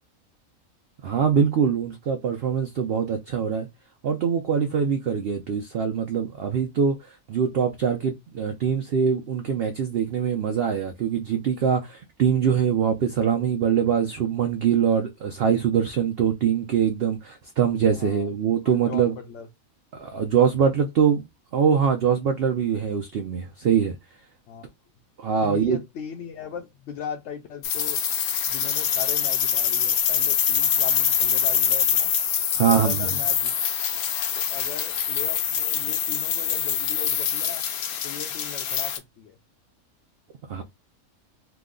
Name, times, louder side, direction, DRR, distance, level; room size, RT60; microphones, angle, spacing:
voice 1, 1.0-3.7 4.0-19.1 20.0-21.2 21.5-24.0 25.2-25.8 32.5-33.1 40.5-40.6, right 7 dB, 65° right, 0.6 m, -23 dB
voice 2, 17.9-18.3 18.6-19.5 24.5-24.7 25.4-28.0 28.5-32.1 32.6-33.5 33.8-33.9 34.4-37.6 38.0-39.4, left 8 dB, 65° left, 0.8 m, -38 dB
sound 1, 27.6-39.0, left 8 dB, 85° left, 1.2 m, -24 dB
3.0 x 2.1 x 3.6 m
omnidirectional pair, 1.5 m